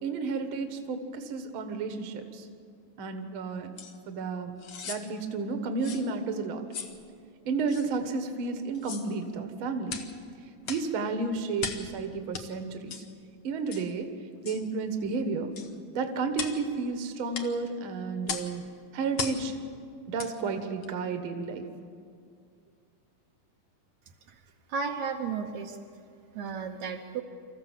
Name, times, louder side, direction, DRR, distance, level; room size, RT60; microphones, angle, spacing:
voice 1, 0.0-2.5 3.0-3.7 4.1-4.5 4.8-6.6 7.5-9.9 10.7-13.0 13.4-14.1 14.4-15.5 15.9-18.6 18.9-19.5 20.1-21.7, right 4 dB, 50° right, 6 dB, 1.9 m, -32 dB
sound 1, 3.8-3.9 4.6-5.0 5.8-6.1 6.7-7.0 7.7-7.9 8.7-9.1 9.9-10.1 10.6-10.9 11.6-11.9 12.3-12.5 12.9-13.1 13.7-13.9 14.5-14.6 15.6-15.7 16.3-16.6 17.3-17.5 18.3-18.5 19.2-19.4 20.2-20.3 20.8-20.9, left 6 dB, 60° left, 1.2 m, -37 dB
voice 2, 24.7-25.8 26.3-27.2, right 5 dB, 70° right, 3 dB, 2.1 m, -33 dB
25.5 x 14.5 x 7.4 m, 2.3 s
omnidirectional pair, 3.5 m